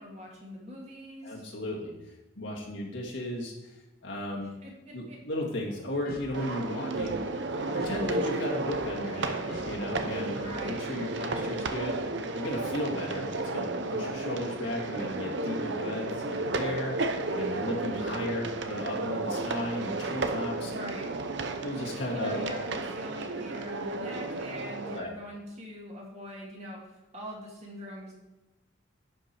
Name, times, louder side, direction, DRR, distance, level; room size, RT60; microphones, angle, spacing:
voice 1, 0.0-1.5 4.6-5.2 10.3-10.8 20.7-21.1 22.1-28.1, equal, 35° right, -2 dB, 2.0 m, -43 dB
voice 2, 1.2-1.9 2.4-3.5 4.0-4.5 4.9-7.2 7.7-12.0 12.3-13.3 13.5-17.0 17.3-20.7 21.6-22.4 24.8-25.1, left 1 dB, 65° left, -2 dB, 2.0 m, -35 dB
sound 1, 5.6-10.8, left 2 dB, 45° left, 1.2 m, -48 dB
sound 2, 6.3-25.0, right 2 dB, 60° right, 0.7 m, -33 dB
11.0 x 5.2 x 4.5 m, 1.0 s
head